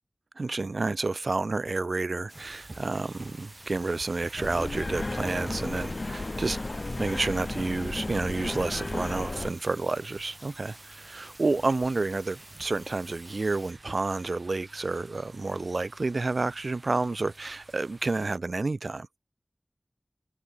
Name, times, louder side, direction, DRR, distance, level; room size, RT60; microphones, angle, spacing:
voice 1, 0.4-6.6 7.0-19.1, right 3 dB, 80° right, 0.8 m, -30 dB
sound 1, 2.3-13.7, right 1 dB, 30° right, 4.7 m, -51 dB
sound 2, 2.3-18.4, right 2 dB, 60° right, 4.2 m, -51 dB
sound 3, 4.4-9.5, left 2 dB, 55° left, 0.9 m, -34 dB
wide cardioid pair, 50°, 0 cm